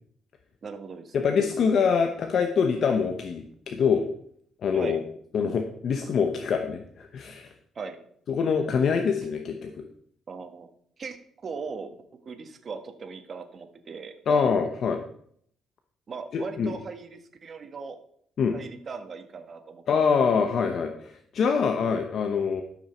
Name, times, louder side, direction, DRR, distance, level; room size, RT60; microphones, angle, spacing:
voice 1, 0.6-1.4 4.7-5.0 7.7-8.0 10.3-10.7 11.0-11.2 11.4-12.0 12.2-14.5 16.1-18.0 18.5-20.3, right 5 dB, 45° right, 7 dB, 1.4 m, -39 dB
voice 2, 1.1-4.1 4.6-5.0 5.3-7.5 8.3-9.8 14.3-15.0 16.3-16.7 18.4-18.6 19.9-22.6, left 6 dB, 60° left, 5 dB, 0.9 m, -25 dB
13.0 x 6.1 x 4.4 m, 0.65 s
cardioid pair, 90°, 0 cm